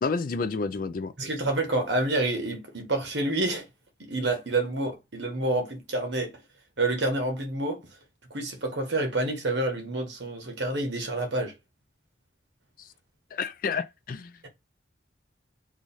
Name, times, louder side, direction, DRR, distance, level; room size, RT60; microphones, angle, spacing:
voice 1, 0.0-1.1 12.8-12.9 13.3-14.5, left 4 dB, 45° left, 0.3 m, -30 dB
voice 2, 1.2-3.7 4.0-6.3 6.8-7.8 8.3-11.5, right 2 dB, 70° right, 1.1 m, -28 dB
3.0 x 2.5 x 4.0 m
head